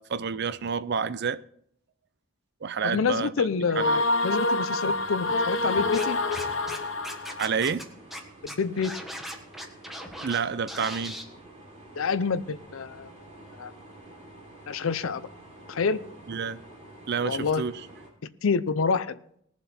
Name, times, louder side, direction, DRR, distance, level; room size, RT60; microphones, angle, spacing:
voice 1, 0.0-1.4 2.6-3.5 3.8-4.0 6.7-6.8 7.4-7.8 10.2-11.2 16.3-16.6 17.1-17.8, right 6 dB, 55° right, 0.6 m, -29 dB
voice 2, 2.8-6.2 8.4-8.9 12.0-13.1 13.5-13.7 14.7-15.2 15.7-16.0 17.2-17.6 18.4-19.2, left 5 dB, 80° left, 0.6 m, -27 dB
sound 1, 3.7-7.6, left 2 dB, 65° left, 1.0 m, -27 dB
sound 2, 4.8-18.1, right 1 dB, 35° right, 3.4 m, -49 dB
Scratching (performance technique), 5.9-6.8 7.0-7.8 8.1-8.2 8.5-10.4 10.7-11.2, equal, ahead, 1.5 m, -38 dB
20.0 x 7.2 x 4.3 m
head